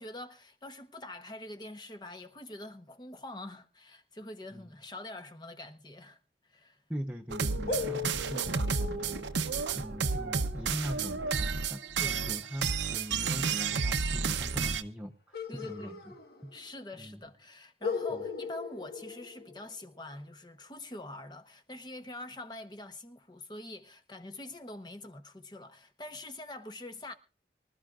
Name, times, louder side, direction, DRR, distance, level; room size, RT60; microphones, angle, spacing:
voice 1, 0.0-6.2 6.5-6.8 12.0-12.2 15.5-16.0 16.5-27.1, left 1 dB, 25° left, 0.9 m, -45 dB
voice 2, 6.9-16.2 16.4-16.5 17.0-17.2 18.1-18.2, equal, 5° right, 0.7 m, -41 dB
sound 1, 7.3-14.8, right 5 dB, 90° right, 0.8 m, -31 dB
sound 2, 7.7-13.1 15.3-16.8 17.1-17.2 17.8-20.0, left 4 dB, 55° left, 1.5 m, -40 dB
24.5 x 13.0 x 2.5 m
head